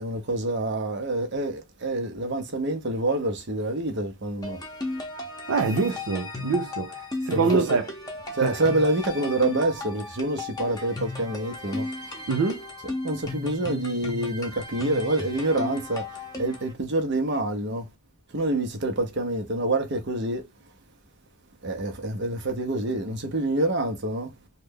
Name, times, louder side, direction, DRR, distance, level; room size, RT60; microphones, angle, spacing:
voice 1, 0.0-4.6 7.3-7.7 8.3-12.3 13.0-17.9 18.3-20.5 21.6-24.3, right 2 dB, 50° right, 0.8 m, -27 dB
sound 1, 4.4-16.7, left 2 dB, 15° left, 0.7 m, -35 dB
voice 2, 5.5-7.9 8.4-8.6 12.3-12.6, right 4 dB, 75° right, 0.5 m, -25 dB
3.2 x 2.3 x 3.4 m
head